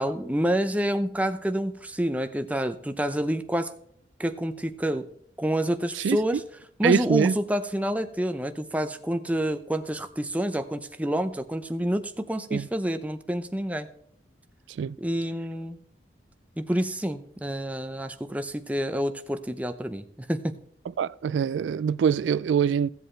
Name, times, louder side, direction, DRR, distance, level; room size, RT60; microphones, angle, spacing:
voice 1, 0.0-3.7 4.2-5.0 5.4-6.4 6.8-13.9 15.0-15.8 16.6-20.5, equal, 10° right, 0.6 m, -28 dB
voice 2, 6.8-7.4 12.5-12.7 14.8-15.0 21.0-22.9, right 7 dB, 80° right, 0.3 m, -24 dB
16.0 x 7.8 x 3.2 m
head